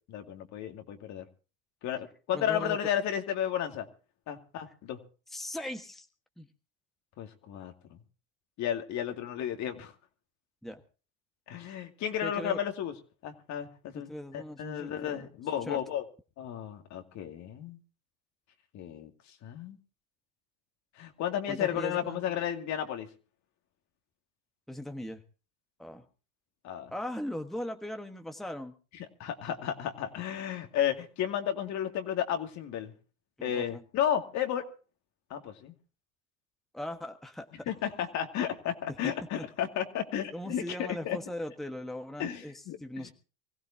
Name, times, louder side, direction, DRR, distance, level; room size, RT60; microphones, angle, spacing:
voice 1, 0.1-1.2 1.8-3.9 4.3-5.0 7.2-8.0 8.6-9.9 11.5-12.9 13.2-16.0 16.4-17.8 18.7-19.1 19.4-19.8 21.0-23.1 26.6-26.9 29.2-32.9 33.4-34.7 35.3-35.7 37.7-41.2 42.2-42.8, left 10 dB, 55° left, 5 dB, 2.4 m, -33 dB
voice 2, 2.3-2.8 5.3-6.1 6.4-6.5 10.6-10.8 12.2-12.6 13.9-15.3 15.7-15.8 21.5-22.2 24.7-25.2 25.8-26.1 26.9-28.7 33.4-33.8 36.7-37.7 38.9-39.5 40.3-43.1, left 1 dB, ahead, 5 dB, 1.4 m, -39 dB
24.5 x 15.5 x 2.8 m, 0.35 s
supercardioid pair, 110°, 34 cm